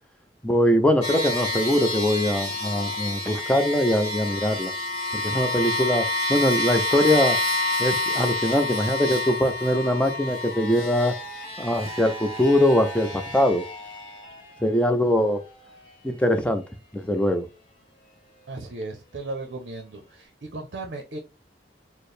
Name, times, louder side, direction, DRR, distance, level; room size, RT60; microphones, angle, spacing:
voice 1, 0.4-4.7 5.1-7.4 7.8-11.1 11.6-13.6 14.6-15.4 16.0-16.6 16.9-17.5, left 1 dB, 5° left, 0.4 m, -22 dB
sound 1, 1.0-14.6, left 2 dB, 30° left, 1.1 m, -29 dB
voice 2, 18.5-21.2, right 2 dB, 60° right, 0.6 m, -36 dB
4.4 x 2.0 x 3.2 m
head